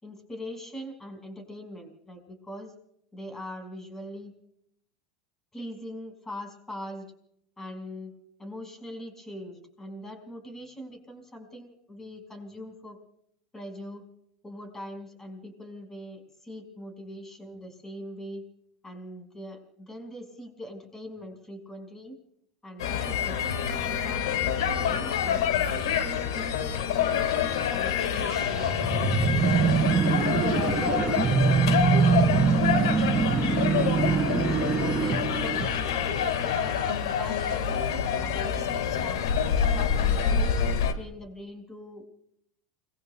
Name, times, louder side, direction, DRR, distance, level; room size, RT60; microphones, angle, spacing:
voice 1, 0.0-2.7 3.1-4.3 5.5-7.1 7.6-8.1 8.4-13.0 13.5-14.0 14.4-18.4 18.8-22.1 22.6-24.4 24.8-25.5 26.0-31.0 31.4-31.6 31.9-33.0 33.6-37.8 38.2-40.5 40.9-42.0, equal, 15° left, 6 dB, 5.2 m, -42 dB
sound 1, 22.8-40.9, left 7 dB, 80° left, 1.7 m, -27 dB
sound 2, 28.0-36.1, right 5 dB, 20° right, 2.9 m, -24 dB
30.0 x 21.0 x 2.3 m, 0.73 s
hypercardioid pair, 100°, 2 cm